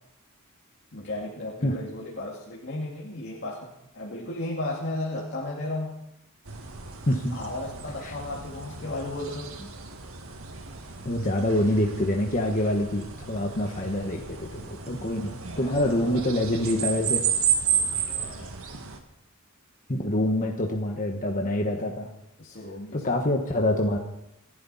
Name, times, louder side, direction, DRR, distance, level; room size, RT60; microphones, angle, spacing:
voice 1, 0.9-6.0 7.3-9.5 15.2-16.2 18.0-18.5 22.4-23.1, left 2 dB, 55° left, -4 dB, 2.4 m, -35 dB
sound 1, 6.5-19.0, right 7 dB, 85° right, 1.9 m, -32 dB
voice 2, 11.0-17.2 19.9-22.1 22.9-24.0, left 1 dB, 40° left, 1 dB, 1.4 m, -26 dB
29.0 x 11.0 x 4.2 m, 0.85 s
head